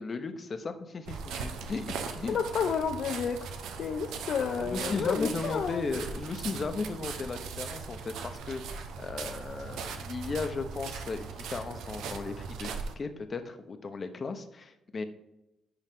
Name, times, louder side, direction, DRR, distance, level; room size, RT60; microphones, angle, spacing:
voice 1, 0.0-2.4 4.6-15.0, left 4 dB, 40° left, 8 dB, 0.9 m, -36 dB
sound 1, 1.1-12.9, right 5 dB, 85° right, 0.7 m, -39 dB
voice 2, 2.3-3.4 3.8-5.8, left 6 dB, 65° left, 6 dB, 0.5 m, -30 dB
10.5 x 4.0 x 3.7 m, 0.91 s
cardioid pair, 90°, 0 cm